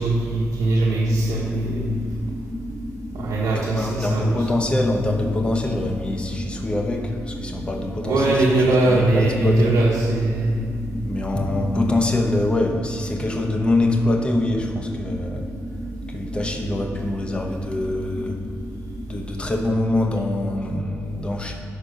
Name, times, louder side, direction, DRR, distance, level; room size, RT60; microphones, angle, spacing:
voice 1, 0.0-1.9 3.1-4.5 8.0-10.5, right 2 dB, 75° right, -6 dB, 1.3 m, -20 dB
sound 1, 1.0-19.0, left 1 dB, 35° left, 1.6 m, -35 dB
voice 2, 3.5-9.8 11.1-15.5 16.1-18.4 19.1-21.6, left 2 dB, 20° left, 3 dB, 0.9 m, -24 dB
12.0 x 4.4 x 5.2 m, 2.3 s
wide cardioid pair, 155°, 6 cm